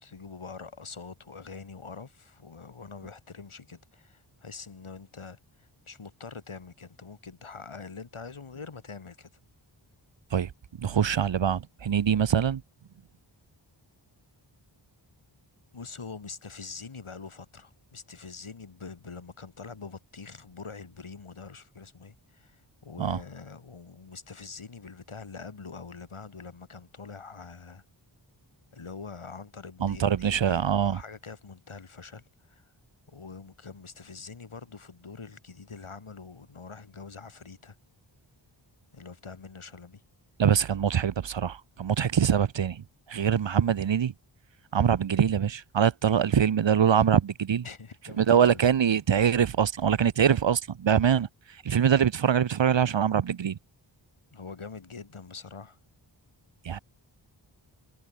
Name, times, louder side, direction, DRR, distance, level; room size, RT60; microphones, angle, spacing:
voice 1, 0.0-9.3 10.8-11.0 15.7-27.8 28.7-32.7 33.1-37.8 38.9-40.0 43.1-43.3 47.6-48.6 54.3-55.8, left 4 dB, 75° left, 7.9 m, -44 dB
voice 2, 10.8-12.6 23.0-23.2 29.8-31.0 40.4-44.1 44.7-47.6 48.2-51.3 51.6-53.6 56.6-56.8, right 8 dB, 60° right, 0.9 m, -24 dB
wide cardioid pair, 60°, 50 cm